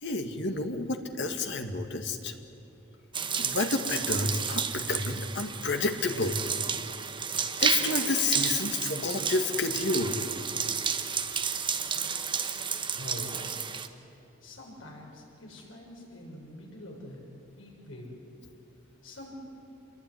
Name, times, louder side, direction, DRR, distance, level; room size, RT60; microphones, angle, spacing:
voice 1, 0.0-2.3 3.4-6.4 7.6-10.2, left 3 dB, 60° left, 5 dB, 2.1 m, -30 dB
sound 1, 3.1-13.9, right 6 dB, 25° right, 1.2 m, -31 dB
voice 2, 12.9-13.7 14.4-17.2 17.5-18.2 19.0-19.3, left 1 dB, 80° left, -1 dB, 6.8 m, -45 dB
27.5 x 22.0 x 9.8 m, 2.8 s
head